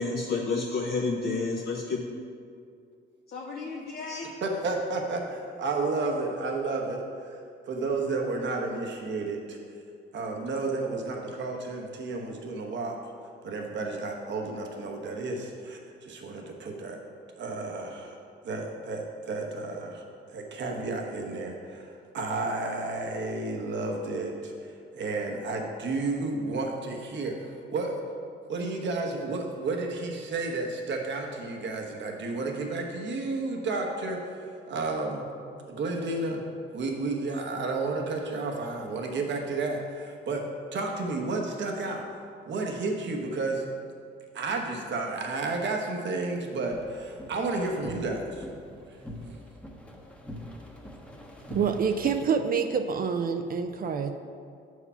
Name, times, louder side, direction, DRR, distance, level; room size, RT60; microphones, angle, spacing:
voice 1, 0.0-2.0 3.3-4.3, left 3 dB, 50° left, -1 dB, 0.8 m, -30 dB
voice 2, 4.4-7.4 7.7-9.6 10.1-13.0 13.4-17.0 17.3-18.1 18.4-20.0 20.3-28.0 28.5-35.3 35.7-36.4 36.7-42.1 42.5-43.6 44.3-48.5, right 3 dB, 65° right, 2 dB, 1.1 m, -32 dB
sound 1, 46.7-52.2, left 1 dB, 5° left, 0.9 m, -44 dB
voice 3, 51.5-54.1, right 6 dB, 45° right, 7 dB, 0.5 m, -27 dB
6.9 x 4.8 x 5.5 m, 2.3 s
cardioid pair, 90°, 20 cm